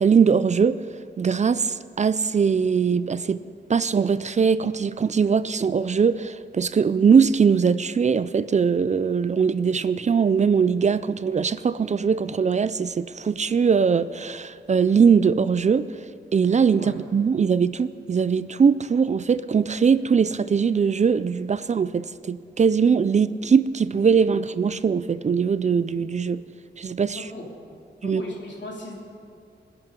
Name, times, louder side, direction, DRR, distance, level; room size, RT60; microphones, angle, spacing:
voice 1, 0.0-0.8 1.2-3.4 3.7-15.9 16.3-26.4 26.8-27.2 28.0-28.2, right 6 dB, 40° right, 0.4 m, -21 dB
voice 2, 28.0-28.9, left 1 dB, 75° left, 3.3 m, -36 dB
25.5 x 10.5 x 5.2 m
wide cardioid pair, 175°, 19 cm